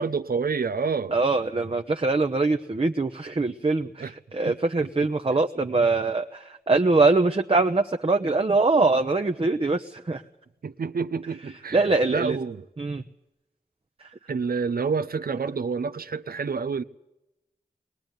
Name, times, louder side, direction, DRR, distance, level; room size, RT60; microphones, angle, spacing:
voice 1, 0.0-1.2 4.0-4.1 4.5-4.6 4.8-5.1 10.6-12.6 14.3-16.8, right 5 dB, 75° right, 0.8 m, -28 dB
voice 2, 1.1-10.2 11.7-12.4 12.8-13.0, right 3 dB, 35° right, 1.0 m, -23 dB
22.0 x 18.5 x 9.3 m
cardioid pair, 40°, 15 cm